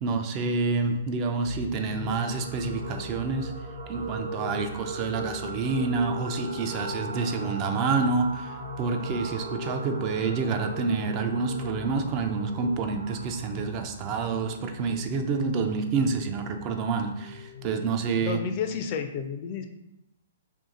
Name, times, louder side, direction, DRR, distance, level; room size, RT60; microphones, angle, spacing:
voice 1, 0.0-3.5 3.9-18.4, right 4 dB, 35° right, 6 dB, 0.4 m, -28 dB
sound 1, 1.4-17.8, left 1 dB, 55° right, 1.0 m, -38 dB
voice 2, 18.2-19.6, left 6 dB, 40° left, 6 dB, 0.4 m, -31 dB
2.7 x 2.5 x 3.7 m, 0.89 s
hypercardioid pair, 120°, 0 cm